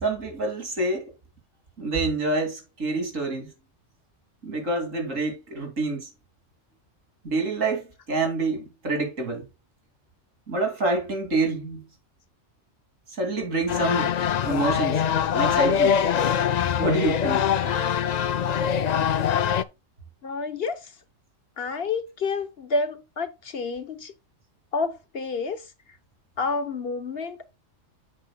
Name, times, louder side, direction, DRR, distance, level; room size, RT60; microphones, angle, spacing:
voice 1, 0.0-1.1 1.8-3.5 4.4-6.1 7.2-9.5 10.5-11.8 13.2-14.1 14.4-15.0 15.3-16.0 16.8-18.3, right 2 dB, 80° right, 3.1 m, -27 dB
sound 1, 13.7-19.6, left 8 dB, 80° left, 0.3 m, -23 dB
voice 2, 20.2-20.9 21.6-24.1 24.7-25.6 26.4-27.5, left 4 dB, 55° left, 1.1 m, -29 dB
8.7 x 7.9 x 2.2 m
omnidirectional pair, 1.3 m